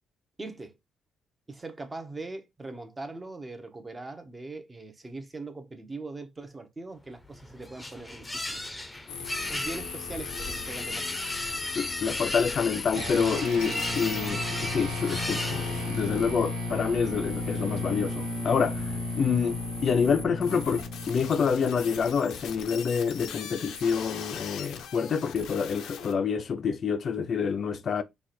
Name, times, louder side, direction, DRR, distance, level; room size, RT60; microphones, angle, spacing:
voice 1, 0.4-0.8 1.5-8.6 9.5-11.2, right 2 dB, 25° right, 1.0 m, -41 dB
sound 1, 7.2-16.1, left 1 dB, 15° left, 0.8 m, -36 dB
sound 2, 9.1-26.1, left 6 dB, 85° left, 0.7 m, -40 dB
voice 2, 11.8-18.9 19.2-28.0, left 6 dB, 50° left, 0.6 m, -27 dB
sound 3, 12.9-22.7, left 1 dB, 80° right, 1.4 m, -34 dB
4.7 x 2.5 x 4.2 m
cardioid pair, 90°, 0 cm